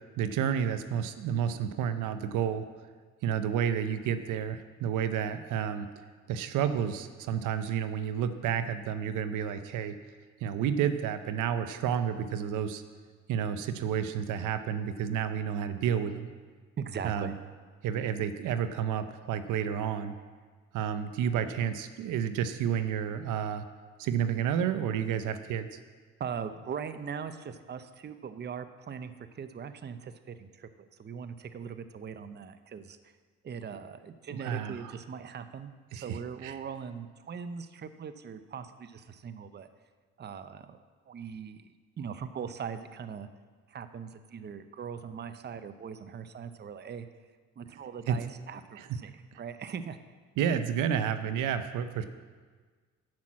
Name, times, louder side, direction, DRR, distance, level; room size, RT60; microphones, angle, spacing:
voice 1, 0.2-2.7 3.2-5.9 6.3-10.0 10.4-12.8 13.3-16.3 17.0-17.3 17.8-20.2 20.7-23.6 24.0-25.8 34.4-34.9 35.9-36.5 48.1-48.2 48.8-49.0 50.4-52.0, right 8 dB, 85° right, 10 dB, 0.7 m, -30 dB
voice 2, 16.8-17.3 26.2-33.0 33.4-39.7 40.2-40.8 41.1-43.3 43.7-47.1 47.6-50.0, right 7 dB, 35° right, 11 dB, 0.6 m, -40 dB
10.5 x 6.0 x 7.3 m, 1.5 s
cardioid pair, 90°, 30 cm